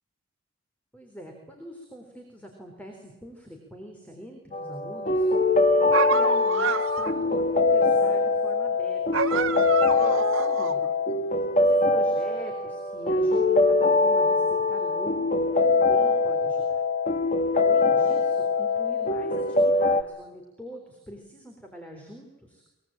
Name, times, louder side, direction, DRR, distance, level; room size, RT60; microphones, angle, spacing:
voice 1, 0.9-5.3 5.7-10.9 11.6-16.9 17.6-22.6, equal, 5° left, 2 dB, 3.8 m, -44 dB
sound 1, 4.5-20.0, left 3 dB, 35° left, 1.4 m, -23 dB
sound 2, 5.9-7.2 9.1-10.9, right 6 dB, 65° right, 1.4 m, -28 dB
23.5 x 22.0 x 8.8 m, 1.0 s
head